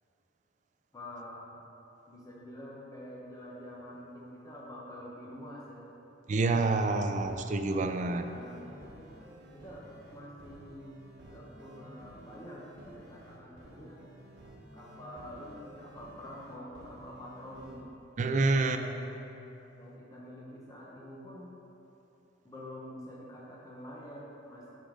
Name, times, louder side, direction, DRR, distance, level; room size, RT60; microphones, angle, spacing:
voice 1, 0.9-1.6 2.1-5.9 7.9-9.2 9.5-9.8 10.1-14.0 14.7-17.8 18.5-19.2 19.8-21.5 22.4-24.7, equal, 20° left, -5 dB, 0.8 m, -47 dB
voice 2, 6.3-8.3 18.2-18.8, right 3 dB, 40° right, 7 dB, 0.3 m, -27 dB
sound 1, 6.9-17.8, right 1 dB, 60° right, 1.2 m, -52 dB
8.4 x 3.8 x 4.9 m, 2.9 s
head